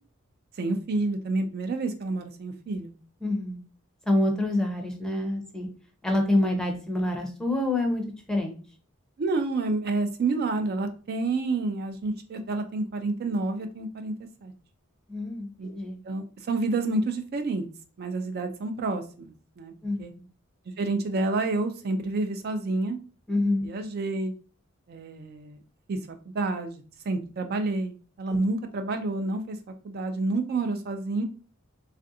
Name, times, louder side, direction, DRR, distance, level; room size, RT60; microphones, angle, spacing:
voice 1, 0.5-2.9 9.2-14.1 14.4-14.5 15.6-15.7 16.0-17.6 18.0-19.7 20.0-20.1 20.7-23.0 23.6-24.3 24.9-25.6 25.9-29.6 29.8-31.2, right 3 dB, 50° right, 6 dB, 0.4 m, -29 dB
voice 2, 3.2-3.6 4.1-5.7 6.0-8.0 8.3-8.6 15.1-16.0 19.8-20.0 23.3-23.7, left 1 dB, 5° left, 2 dB, 0.5 m, -26 dB
3.3 x 2.5 x 2.6 m, 0.37 s
head